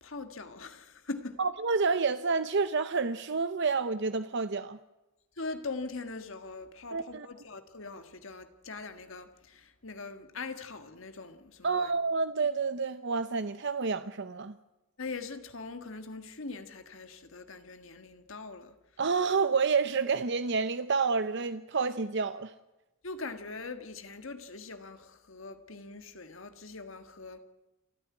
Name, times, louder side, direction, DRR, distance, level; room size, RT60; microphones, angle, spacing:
voice 1, 0.0-1.4 5.4-11.9 15.0-18.8 23.0-27.4, left 3 dB, 70° left, 1.6 m, -42 dB
voice 2, 1.4-4.8 6.9-7.3 11.6-14.5 19.0-22.5, right 4 dB, 60° right, 0.7 m, -29 dB
28.5 x 10.0 x 9.5 m
head